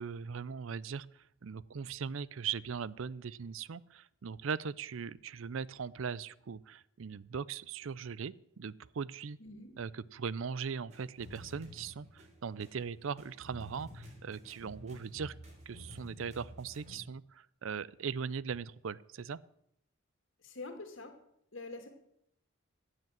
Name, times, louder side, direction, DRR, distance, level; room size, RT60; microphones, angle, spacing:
voice 1, 0.0-9.4 9.8-15.3 15.7-19.4, right 6 dB, 75° right, 21 dB, 0.5 m, -39 dB
voice 2, 9.4-9.7 20.4-21.2 21.5-21.9, left 3 dB, 70° left, 6 dB, 2.4 m, -45 dB
sound 1, 10.9-17.0, equal, 35° right, 3.3 m, -51 dB
15.0 x 8.0 x 7.5 m, 0.74 s
head